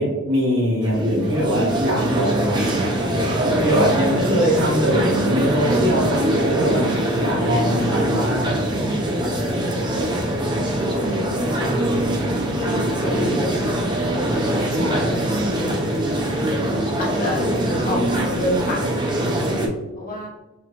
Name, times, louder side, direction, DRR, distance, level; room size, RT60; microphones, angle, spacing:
voice 1, 0.0-3.1 3.4-8.6 14.7-15.3, equal, 60° right, -4 dB, 1.3 m, -22 dB
sound 1, 0.8-19.7, right 1 dB, 20° right, 0.5 m, -22 dB
voice 2, 9.5-11.6 12.6-13.8 14.1-15.2 15.5-16.0 17.0-17.5 17.8-19.6 19.9-20.3, left 1 dB, 40° left, -2 dB, 1.0 m, -31 dB
4.4 x 2.7 x 2.5 m, 1.1 s
head